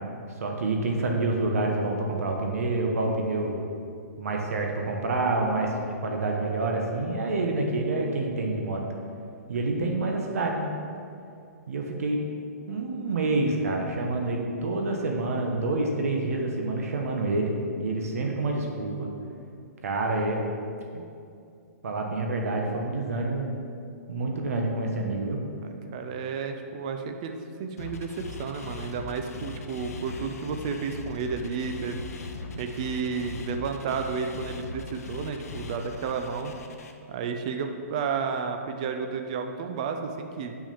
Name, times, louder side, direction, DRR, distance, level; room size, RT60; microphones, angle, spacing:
voice 1, 0.4-3.6 4.2-8.8 9.5-10.7 11.7-12.2 12.7-19.1 19.8-20.4 21.8-23.5 24.1-25.4, right 2 dB, 60° right, 1 dB, 1.2 m, -27 dB
voice 2, 25.6-32.0 32.5-36.5 37.1-40.6, right 5 dB, 25° right, 5 dB, 0.4 m, -32 dB
sound 1, 27.8-36.9, left 4 dB, 65° left, 0.9 m, -40 dB
6.4 x 6.2 x 7.0 m, 2.4 s
hypercardioid pair, 175°, 9 cm